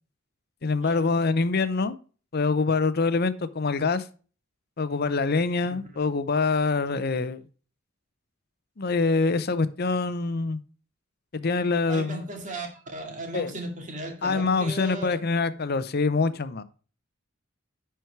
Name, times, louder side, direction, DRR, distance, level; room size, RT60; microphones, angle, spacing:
voice 1, 0.6-1.9 2.3-4.1 4.8-7.4 8.8-10.6 11.3-12.3 13.3-13.5 14.2-16.6, left 4 dB, 50° left, 13 dB, 0.7 m, -25 dB
voice 2, 11.9-15.2, right 2 dB, 40° right, 3 dB, 2.2 m, -37 dB
10.5 x 4.6 x 4.5 m, 0.38 s
head